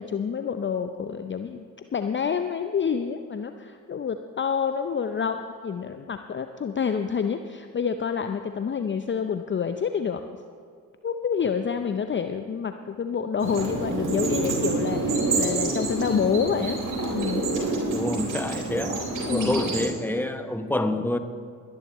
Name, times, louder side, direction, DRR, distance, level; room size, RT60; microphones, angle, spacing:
voice 1, 0.0-1.6 1.9-10.2 11.0-16.8 17.1-17.5 19.2-19.6, left 6 dB, 30° left, 7 dB, 0.7 m, -28 dB
sound 1, 13.4-19.9, right 3 dB, 50° right, 3.7 m, -27 dB
voice 2, 17.9-19.0 19.3-21.2, left 1 dB, 5° left, 8 dB, 1.2 m, -27 dB
21.0 x 11.0 x 3.1 m, 2.3 s
hypercardioid pair, 40°, 40 cm